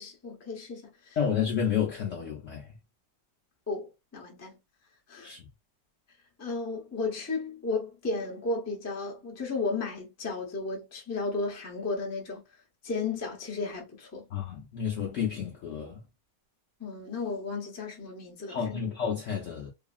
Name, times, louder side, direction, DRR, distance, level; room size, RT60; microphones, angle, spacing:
voice 1, 0.0-1.2 3.7-4.6 5.1-5.3 6.4-12.4 12.8-14.2 16.8-18.8, left 3 dB, 20° left, 0.4 m, -34 dB
voice 2, 1.2-2.7 5.2-5.5 14.3-16.0 18.5-19.7, left 7 dB, 65° left, 0.7 m, -30 dB
2.8 x 2.6 x 2.4 m
omnidirectional pair, 1.9 m